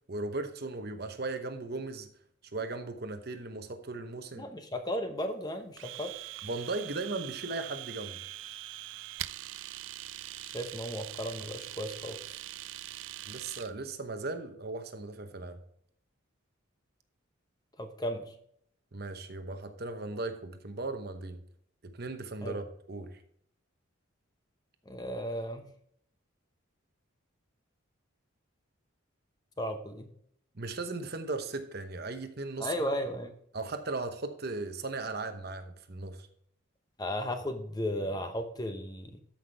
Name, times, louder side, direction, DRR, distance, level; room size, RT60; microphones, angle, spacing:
voice 1, 0.1-2.1 2.5-4.5 6.4-8.2 13.3-15.6 18.9-21.4 21.8-23.2 30.5-32.7 33.5-36.3, right 3 dB, 50° right, 8 dB, 0.9 m, -37 dB
voice 2, 4.3-6.1 10.4-12.2 17.8-18.3 22.4-22.6 24.9-25.6 29.6-30.1 32.6-33.3 37.0-39.2, equal, 20° left, 7 dB, 0.8 m, -35 dB
Domestic sounds home sounds, 5.8-13.7, right 14 dB, 65° right, 0.3 m, -42 dB
13.5 x 5.8 x 3.4 m, 0.68 s
head